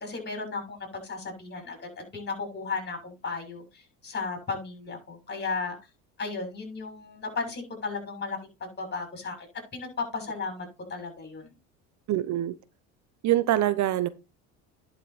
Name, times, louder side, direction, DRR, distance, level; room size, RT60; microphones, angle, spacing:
voice 1, 0.0-5.8 6.2-9.5 9.7-11.5, left 4 dB, 30° left, 6.7 m, -35 dB
voice 2, 12.1-12.6 13.2-14.1, right 13 dB, 55° right, 0.9 m, -24 dB
11.0 x 6.1 x 4.3 m
supercardioid pair, 90°, 35 cm